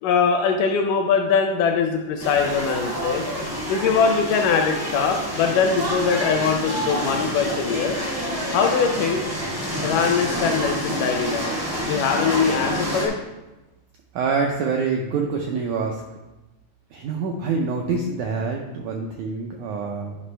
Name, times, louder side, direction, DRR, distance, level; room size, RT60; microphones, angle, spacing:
voice 1, 0.0-3.2 3.7-8.0 8.5-9.2 9.8-11.5 11.9-13.2, left 6 dB, 80° left, 4 dB, 1.9 m, -22 dB
sound 1, 2.2-13.1, equal, 20° right, 0.5 m, -28 dB
voice 2, 14.1-16.0 16.9-20.2, right 5 dB, 85° right, 2 dB, 1.7 m, -26 dB
11.0 x 5.4 x 3.3 m, 1.0 s
omnidirectional pair, 4.2 m